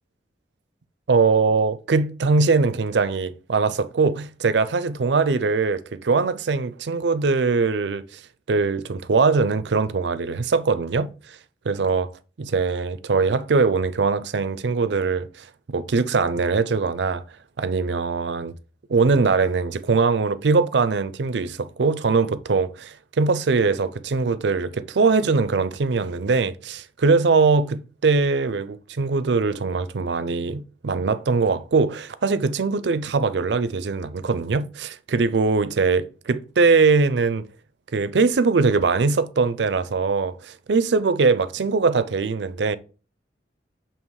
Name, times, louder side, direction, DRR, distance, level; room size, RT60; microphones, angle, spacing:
voice 1, 1.1-8.0 8.5-11.1 11.7-12.1 12.4-17.2 17.6-18.5 18.9-37.5 37.9-42.8, right 4 dB, 80° right, 0.5 m, -21 dB
7.1 x 2.9 x 4.7 m
head